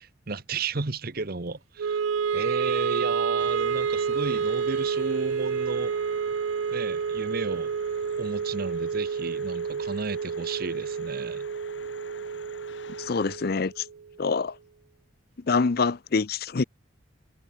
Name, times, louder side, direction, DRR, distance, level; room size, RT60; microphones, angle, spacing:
voice 1, 0.0-2.0 2.3-5.9 6.7-7.7 8.2-11.5, right 3 dB, 50° right, 1.0 m, -33 dB
Wind instrument woodwind instrument, 1.8-14.0, right 6 dB, 90° right, 0.4 m, -29 dB
sound 1, 3.4-13.4, left 4 dB, 65° left, 1.9 m, -48 dB
voice 2, 13.0-13.8 14.2-14.6 15.4-16.6, left 4 dB, 50° left, 0.5 m, -25 dB
head